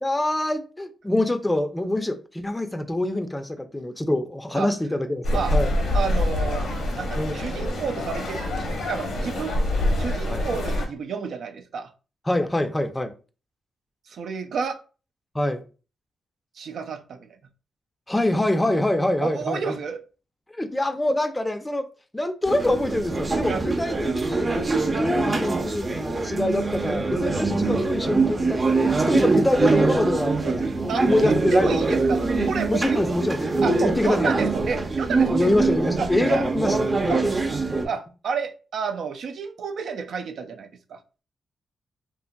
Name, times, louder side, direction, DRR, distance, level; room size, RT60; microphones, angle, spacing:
voice 1, 0.0-5.2 5.5-5.8 7.2-7.4 10.3-10.5 12.3-13.1 15.3-15.6 18.1-19.8 20.5-21.8 22.1-24.5 24.9-32.0 32.7-33.4 33.8-34.3 35.3-36.8 37.0-37.2, left 1 dB, 15° left, 0.4 m, -25 dB
sound 1, 5.2-10.9, left 1 dB, 80° left, 0.8 m, -25 dB
voice 2, 5.9-6.7 7.0-9.6 10.0-11.9 14.1-14.8 16.6-17.4 19.2-20.0 23.5-23.6 30.4-33.0 33.6-35.4 36.0-36.5 37.1-37.3 37.8-41.0, right 5 dB, 75° right, 0.4 m, -31 dB
sound 2, 22.5-37.9, right 3 dB, 35° right, 0.6 m, -24 dB
2.8 x 2.6 x 2.2 m
cardioid pair, 70°, 0 cm